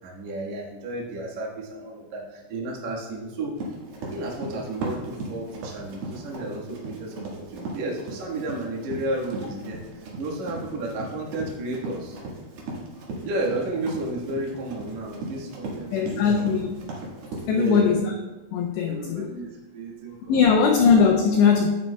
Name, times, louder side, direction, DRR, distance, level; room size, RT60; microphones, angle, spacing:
voice 1, 0.0-3.5 4.1-12.2 13.2-16.3 17.4-18.0 18.8-20.8, right 2 dB, 80° right, -3 dB, 1.6 m, -32 dB
Run, 3.6-17.8, right 2 dB, 65° right, 3.0 m, -37 dB
voice 2, 15.9-16.7 17.5-18.1 18.5-19.3 20.3-21.7, left 6 dB, 85° left, 2 dB, 2.5 m, -20 dB
11.5 x 8.8 x 2.2 m, 1.1 s
omnidirectional pair, 5.7 m